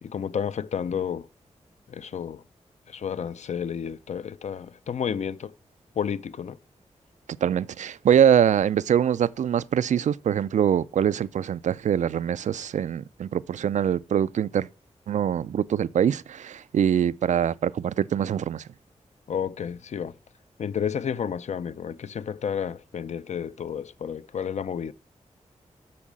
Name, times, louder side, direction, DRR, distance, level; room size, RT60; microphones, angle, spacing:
voice 1, 0.0-1.3 1.9-2.4 2.9-5.5 6.0-6.6 19.3-20.1 20.6-24.9, left 7 dB, 75° left, 0.5 m, -31 dB
voice 2, 7.4-14.7 15.1-18.6, right 9 dB, 90° right, 0.4 m, -23 dB
8.5 x 6.4 x 7.3 m
wide cardioid pair, 100°, 12 cm